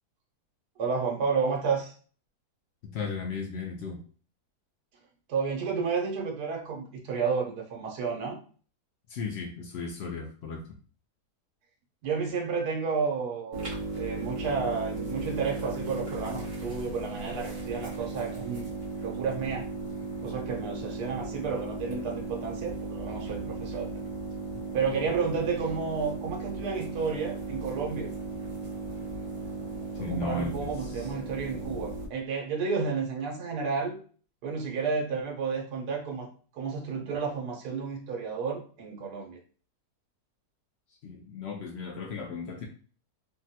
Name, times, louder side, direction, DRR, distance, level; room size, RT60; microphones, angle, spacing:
voice 1, 0.8-1.9 5.3-8.4 12.0-13.7 14.0-18.7 19.0-19.7 20.2-23.9 24.7-28.1 30.0-34.0 34.4-36.3 36.5-39.4, right 5 dB, 85° right, 0 dB, 1.3 m, -31 dB
voice 2, 2.9-4.0 9.1-10.6 30.0-31.1 41.0-42.6, left 4 dB, 85° left, 1 dB, 0.5 m, -35 dB
sound 1, 13.5-32.1, right 3 dB, 30° right, 0.7 m, -36 dB
3.6 x 2.2 x 2.7 m, 0.41 s
omnidirectional pair, 1.7 m